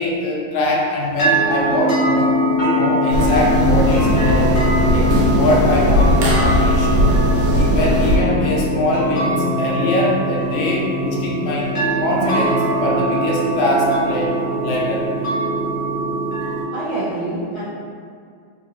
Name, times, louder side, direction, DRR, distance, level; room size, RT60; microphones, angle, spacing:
voice 1, 0.0-2.3 2.6-4.6 4.9-7.0 7.6-11.7 12.0-14.4 14.6-15.0, left 1 dB, 75° left, -2 dB, 1.3 m, -22 dB
sound 1, 1.2-16.6, right 1 dB, 50° left, 0.9 m, -21 dB
sound 2, 3.1-8.2, equal, 85° right, 1.5 m, -18 dB
voice 2, 16.7-17.6, right 2 dB, 70° right, -12 dB, 0.7 m, -25 dB
3.8 x 2.3 x 3.0 m, 2.2 s
omnidirectional pair, 2.3 m